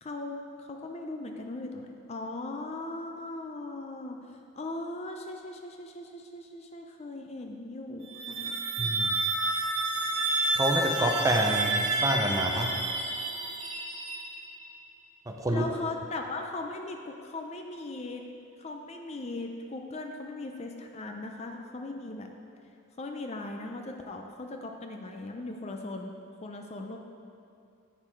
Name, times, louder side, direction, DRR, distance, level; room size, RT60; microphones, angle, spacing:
voice 1, 0.0-8.6 15.5-18.3 18.6-22.3 23.0-26.1 26.4-27.0, left 2 dB, 30° left, 3 dB, 0.4 m, -39 dB
sound 1, 8.0-14.6, right 2 dB, 55° right, 1.5 m, -30 dB
voice 2, 8.8-9.1 10.5-12.7 15.3-15.7, right 1 dB, 15° right, 1 dB, 0.6 m, -27 dB
8.8 x 6.7 x 4.5 m, 2.5 s
head